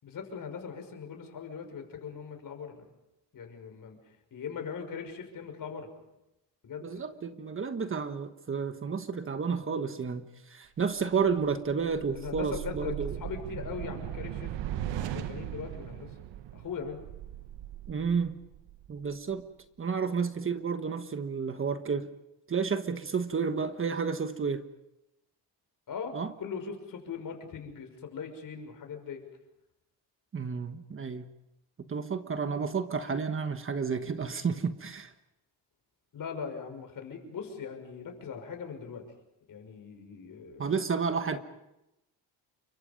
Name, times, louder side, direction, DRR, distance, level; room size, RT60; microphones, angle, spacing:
voice 1, 0.0-2.8 3.3-4.0 4.3-5.9 6.6-7.0 12.1-14.6 14.9-16.1 16.5-17.0 25.9-29.3 33.0-33.1 36.1-39.0 39.5-40.7, left 6 dB, 50° left, 5 dB, 6.0 m, -40 dB
voice 2, 6.8-13.2 17.9-18.4 18.9-19.5 19.8-22.1 22.5-24.6 26.1-26.3 30.3-31.3 31.9-35.1 40.6-41.4, right 5 dB, 30° right, 9 dB, 1.4 m, -31 dB
sound 1, 11.0-19.4, right 12 dB, 85° right, 1.4 m, -39 dB
29.5 x 24.0 x 5.4 m, 0.90 s
cardioid pair, 135°, 42 cm